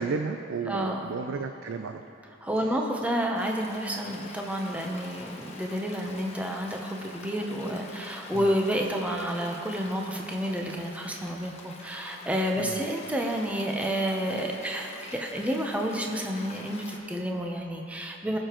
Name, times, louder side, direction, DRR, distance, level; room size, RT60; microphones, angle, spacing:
voice 1, 0.0-2.0 12.6-12.7, right 4 dB, 85° right, 6 dB, 0.4 m, -32 dB
voice 2, 0.7-1.1 2.4-18.4, equal, 5° right, 1 dB, 0.8 m, -30 dB
Stream, 3.3-17.0, left 3 dB, 35° left, 1.0 m, -46 dB
20.0 x 6.7 x 3.0 m, 2.7 s
head